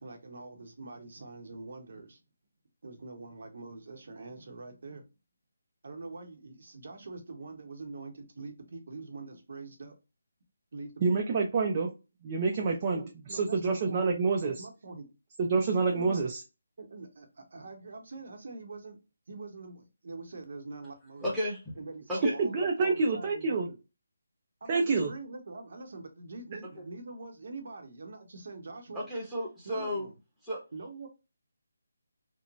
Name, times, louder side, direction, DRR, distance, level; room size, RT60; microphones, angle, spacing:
voice 1, 0.0-2.2 2.8-5.0 5.8-10.0 10.7-11.2 12.7-14.1 14.5-15.1 15.9-16.3 16.8-19.0 19.3-21.4 21.8-23.8 24.6-29.1 29.6-30.1 30.7-31.1, right 3 dB, 55° right, 5 dB, 0.7 m, -44 dB
voice 2, 11.0-11.9 12.2-13.0 13.3-14.6 15.4-16.4 22.4-23.7 24.7-25.1, right 4 dB, 25° right, 1 dB, 0.4 m, -27 dB
voice 3, 21.2-21.7 22.1-22.3 26.8-26.9 28.9-30.1 30.4-30.6, equal, ahead, -7 dB, 0.8 m, -33 dB
3.0 x 2.1 x 2.4 m, 0.28 s
hypercardioid pair, 170°, 0 cm